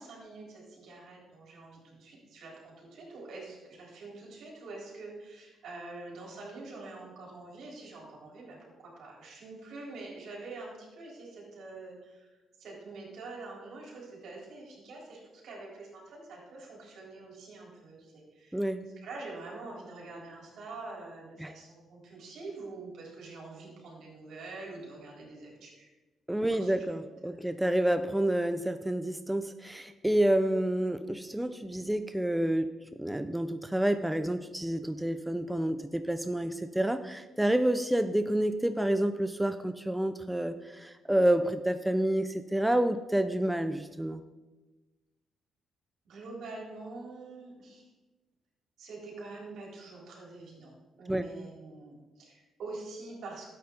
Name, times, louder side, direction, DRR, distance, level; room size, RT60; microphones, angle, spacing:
voice 1, 0.0-12.3 12.6-18.6 19.0-25.9 26.4-26.7 46.0-47.9 48.8-53.5, right 3 dB, 70° right, -3 dB, 3.9 m, -45 dB
voice 2, 18.5-18.8 21.4-21.5 26.3-32.7 33.0-44.2 51.1-51.3, right 1 dB, 5° right, 9 dB, 0.5 m, -29 dB
11.5 x 8.6 x 3.9 m, 1.2 s
cardioid pair, 90°, 0 cm